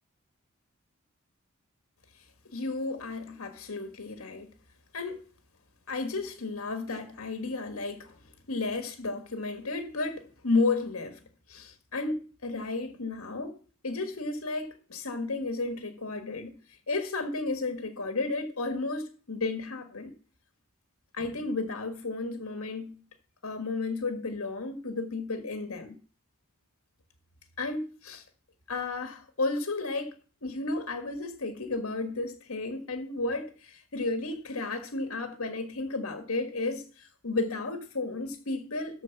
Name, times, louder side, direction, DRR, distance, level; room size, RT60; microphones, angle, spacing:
voice 1, 2.5-4.5 4.9-5.2 5.9-8.2 8.5-11.2 11.5-13.6 13.8-16.5 16.9-20.1 21.1-23.0 23.4-25.9 27.6-28.2 28.7-30.1 30.4-39.0, left 3 dB, 75° left, 1.6 m, -33 dB
13.5 x 4.6 x 5.9 m
head